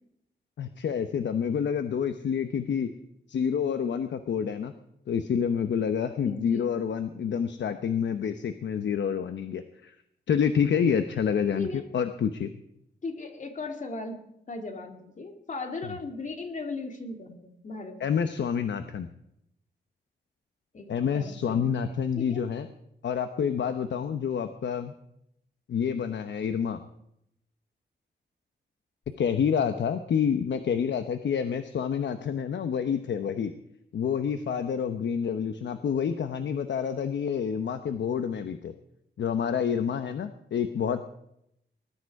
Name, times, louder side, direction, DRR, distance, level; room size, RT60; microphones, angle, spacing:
voice 1, 0.6-2.9 3.3-4.7 5.1-10.0 10.3-12.5 18.0-19.1 20.9-22.7 23.0-24.9 25.7-26.8 29.2-33.5 33.9-38.7 39.2-41.0, left 7 dB, 85° left, 9 dB, 1.0 m, -28 dB
voice 2, 6.2-6.7 11.6-11.9 13.0-18.1 20.7-21.7 22.2-22.4, left 3 dB, 45° left, 4 dB, 2.5 m, -37 dB
20.5 x 12.5 x 4.8 m, 0.76 s
wide cardioid pair, 135°, 18 cm